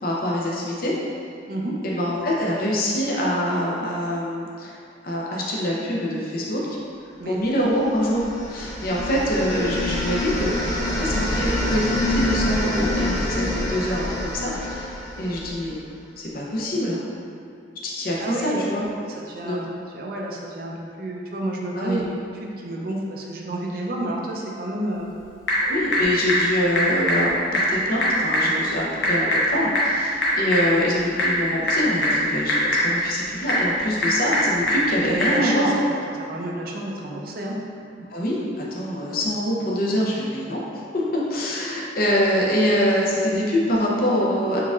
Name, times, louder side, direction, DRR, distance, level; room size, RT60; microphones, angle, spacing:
voice 1, 0.0-0.9 1.8-4.8 5.0-6.6 7.2-8.2 8.5-10.6 10.9-15.7 16.2-17.0 17.8-18.9 19.4-19.6 21.7-22.0 25.6-32.6 32.8-35.7 38.1-44.6, equal, 50° left, -4 dB, 0.6 m, -24 dB
sound 1, 7.8-15.8, left 1 dB, 15° left, 0.7 m, -27 dB
voice 2, 18.2-18.6 19.1-22.1 22.4-25.1 35.1-37.6, right 1 dB, 50° right, -1 dB, 0.5 m, -30 dB
Typing / Telephone, 24.9-35.4, equal, 65° left, 1.0 m, -23 dB
4.6 x 3.5 x 2.4 m, 2.4 s
head